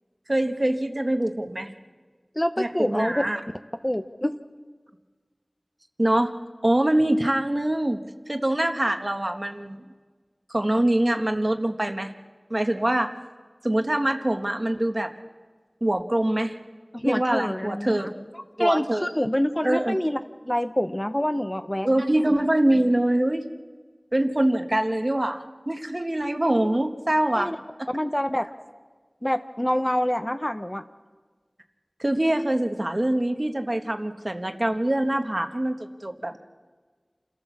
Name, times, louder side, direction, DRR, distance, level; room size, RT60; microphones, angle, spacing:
voice 1, 0.3-1.7 2.6-3.4 6.0-6.3 6.6-8.0 8.3-9.8 10.5-12.1 12.5-13.1 13.6-15.1 15.8-16.5 17.0-18.1 18.6-19.1 19.6-20.0 21.8-23.5 24.1-27.5 27.8-27.9 32.0-36.4, right 1 dB, 40° right, 6 dB, 1.2 m, -24 dB
voice 2, 2.4-3.2 3.8-4.3 16.9-18.1 18.6-20.2 20.4-21.9 27.3-27.6 27.9-28.5 29.2-30.8, equal, 20° left, 8 dB, 0.7 m, -26 dB
28.0 x 13.5 x 7.2 m, 1.4 s
wide cardioid pair, 40°, 0 cm